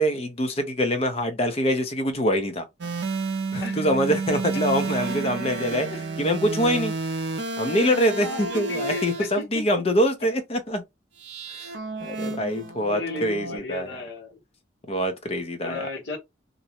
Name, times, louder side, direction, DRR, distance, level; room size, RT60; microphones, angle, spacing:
voice 1, 0.0-2.7 3.5-5.9 6.2-6.9 7.6-10.8 11.5-11.7 12.0-14.0 14.9-15.9, equal, 30° left, 0.5 m, -24 dB
sound 1, 2.8-9.4 11.2-13.6, right 3 dB, 65° right, 0.4 m, -31 dB
voice 2, 8.2-9.6 12.9-14.4 15.6-16.2, left 3 dB, 65° left, 1.1 m, -35 dB
2.5 x 2.1 x 2.8 m
head